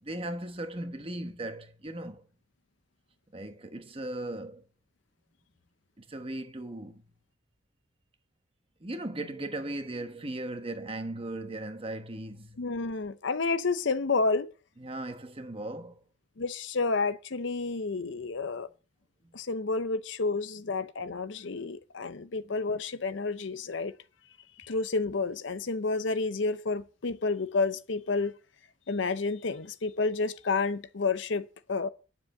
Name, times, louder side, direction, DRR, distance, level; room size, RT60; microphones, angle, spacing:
voice 1, 0.0-2.2 3.3-4.6 6.0-7.0 8.8-12.6 14.8-16.0 19.2-19.4 22.4-22.6, right 1 dB, 30° right, 1.1 m, -37 dB
voice 2, 12.6-14.5 16.4-18.7 19.3-23.9 24.6-28.3 28.9-31.9, left 3 dB, 65° left, 0.7 m, -30 dB
10.0 x 7.5 x 6.5 m
head